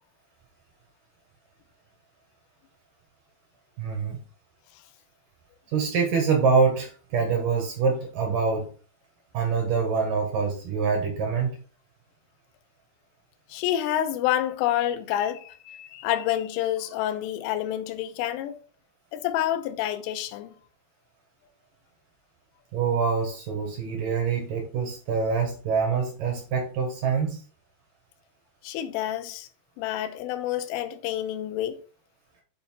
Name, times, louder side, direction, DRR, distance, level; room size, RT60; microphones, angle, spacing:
voice 1, 3.8-4.2 5.7-8.7 9.3-11.6 22.7-27.4, right 5 dB, 70° right, 2.0 m, -25 dB
voice 2, 13.5-18.6 19.1-20.5 28.6-29.5 29.8-31.8, left 12 dB, 85° left, 3.2 m, -28 dB
7.8 x 5.5 x 4.5 m
omnidirectional pair, 5.9 m